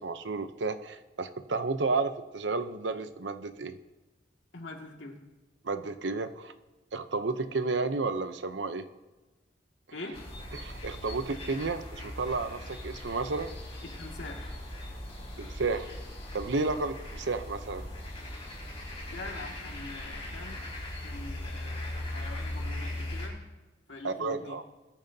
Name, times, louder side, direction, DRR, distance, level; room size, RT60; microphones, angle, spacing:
voice 1, 0.0-3.8 5.6-6.5 6.9-8.9 10.5-13.6 15.4-15.9 16.3-17.8 24.0-24.6, right 3 dB, 75° right, 10 dB, 0.8 m, -32 dB
voice 2, 4.5-5.2 9.9-10.2 13.8-14.6 16.7-16.8 19.1-20.6 21.0-23.4 23.9-24.6, left 2 dB, 85° left, 1 dB, 2.2 m, -44 dB
sound 1, 10.1-23.3, left 1 dB, 35° left, 4.2 m, -39 dB
21.0 x 13.0 x 2.8 m, 1.2 s
head